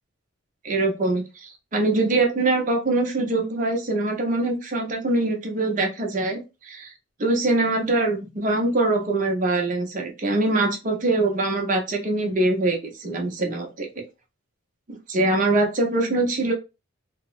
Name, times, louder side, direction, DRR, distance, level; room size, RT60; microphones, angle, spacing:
voice 1, 0.6-6.9 7.2-14.0 15.1-16.5, right 2 dB, 35° right, 3 dB, 0.6 m, -23 dB
2.9 x 2.0 x 2.3 m, 0.27 s
head